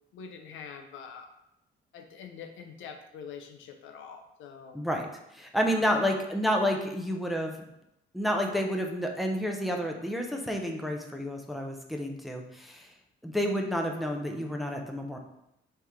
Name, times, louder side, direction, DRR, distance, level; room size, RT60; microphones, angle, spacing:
voice 1, 0.1-1.3 1.9-4.8 5.7-5.9, left 6 dB, 80° left, 5 dB, 0.6 m, -45 dB
voice 2, 4.7-7.5 8.1-12.9 13.2-15.2, equal, ahead, 2 dB, 0.7 m, -30 dB
4.3 x 3.2 x 3.5 m, 0.83 s
cardioid pair, 90°, 20 cm